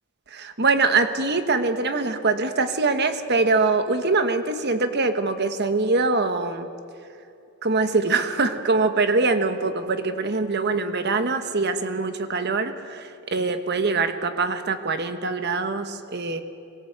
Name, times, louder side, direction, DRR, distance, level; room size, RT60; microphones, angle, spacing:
voice 1, 0.3-6.7 7.6-16.4, right 3 dB, 50° right, 9 dB, 1.3 m, -23 dB
24.0 x 17.0 x 8.1 m, 2.5 s
head